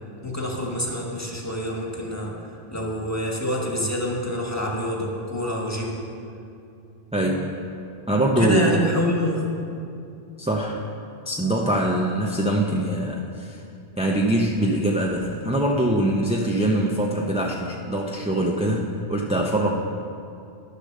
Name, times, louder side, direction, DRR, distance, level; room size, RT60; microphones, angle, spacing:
voice 1, 0.2-2.3 2.7-6.0 8.4-9.5, left 1 dB, 15° left, -2 dB, 1.4 m, -26 dB
voice 2, 7.1-7.5 8.1-8.9 10.4-10.8 11.3-13.6 14.0-19.7, right 1 dB, 10° right, -1 dB, 0.4 m, -23 dB
10.5 x 6.7 x 6.5 m, 2.5 s
omnidirectional pair, 1.1 m